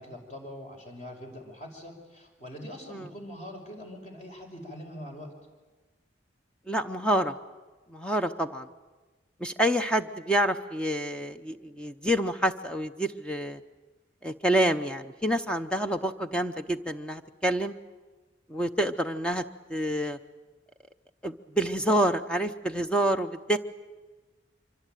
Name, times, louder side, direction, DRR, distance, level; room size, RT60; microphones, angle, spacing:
voice 1, 0.0-5.3, equal, 35° left, 3 dB, 5.5 m, -43 dB
voice 2, 6.7-7.3 7.9-8.7 9.4-13.6 14.2-17.7 18.5-19.4 19.7-20.2 21.2-23.6, right 1 dB, 5° left, 7 dB, 0.8 m, -27 dB
25.5 x 24.5 x 9.2 m, 1.2 s
head